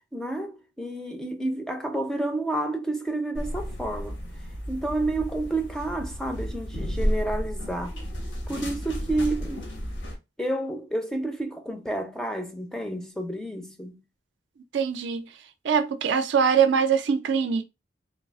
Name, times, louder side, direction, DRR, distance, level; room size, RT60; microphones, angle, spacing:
voice 1, 0.1-4.2 4.7-8.0 8.5-9.7 10.4-14.0, right 2 dB, 5° left, 0.4 m, -30 dB
sound 1, 3.3-10.2, equal, 85° left, 1.1 m, -32 dB
voice 2, 14.7-15.3 15.6-17.6, right 6 dB, 70° right, 0.4 m, -23 dB
3.2 x 2.3 x 2.3 m
head